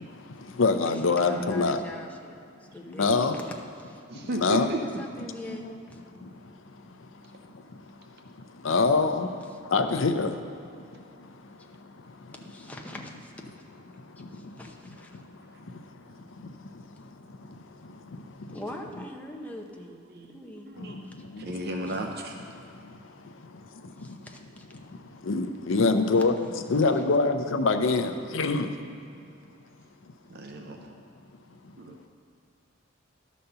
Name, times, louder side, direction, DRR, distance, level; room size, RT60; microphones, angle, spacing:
voice 1, 0.3-1.8 2.9-3.4 4.1-4.7 5.5-5.7 6.1-10.4 10.8-12.3 13.9-14.6 15.1-18.6 20.8-21.7 22.5-24.3 24.7-28.7 30.6-31.0, left 3 dB, 70° left, 0.6 m, -28 dB
voice 2, 1.2-2.4 2.7-4.0 4.8-6.0 12.3-13.3 14.3-15.1 18.5-20.0 20.3-20.7 21.9-22.0 24.0-24.7 25.8-27.1, left 1 dB, 5° left, 0.7 m, -42 dB
voice 3, 4.1-4.8 20.1-20.3 20.7-21.0 21.3-22.3 30.3-30.9 31.8-32.1, right 1 dB, 55° right, 0.5 m, -34 dB
11.5 x 4.2 x 6.7 m
head